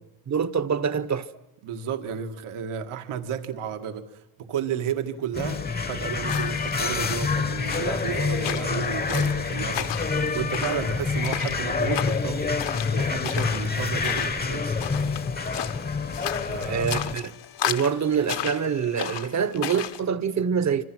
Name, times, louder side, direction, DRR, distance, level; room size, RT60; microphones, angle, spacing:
voice 1, 0.3-1.3 16.7-17.3 17.6-20.8, right 7 dB, 35° right, 0.9 m, -25 dB
voice 2, 1.6-5.6 5.9-9.9 10.3-12.5 12.9-14.7 16.5-16.9, right 8 dB, 85° right, 1.9 m, -32 dB
sound 1, 5.3-17.1, left 4 dB, 20° left, 0.8 m, -27 dB
sound 2, 5.5-19.0, left 14 dB, 80° left, 1.9 m, -46 dB
sound 3, 6.2-20.0, left 10 dB, 60° left, 1.0 m, -35 dB
26.0 x 26.0 x 6.1 m
cardioid pair, 175°, 48 cm